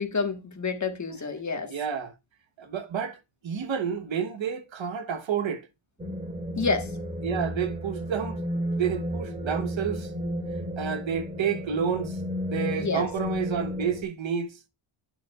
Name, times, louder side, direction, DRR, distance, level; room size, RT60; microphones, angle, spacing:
voice 1, 0.0-1.7 6.6-6.9 12.8-13.1, left 4 dB, 35° left, 1.4 m, -28 dB
voice 2, 1.6-2.1 2.6-5.7 7.2-8.4 8.7-10.1 10.8-12.2 12.5-14.5, right 7 dB, 65° right, 1.1 m, -30 dB
sound 1, 6.0-14.0, equal, 15° right, 2.0 m, -32 dB
9.1 x 6.9 x 2.3 m
wide cardioid pair, 130°, 49 cm